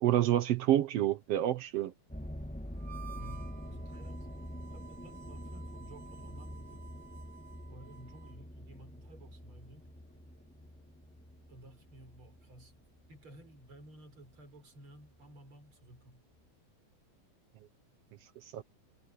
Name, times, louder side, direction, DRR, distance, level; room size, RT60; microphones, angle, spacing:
voice 1, 0.0-1.9 18.4-18.6, right 12 dB, 70° right, 1.6 m, -28 dB
sound 1, 2.1-14.4 14.9-15.3 15.9-16.0 16.3-16.4, equal, 5° left, 1.0 m, -46 dB
Harmonica, 2.8-8.4, right 8 dB, 25° right, 5.1 m, -54 dB
voice 2, 3.1-4.3 4.7-6.9 7.7-9.9 11.5-12.8 13.1-16.2, right 1 dB, 40° right, 5.6 m, -54 dB
omnidirectional pair, 3.4 m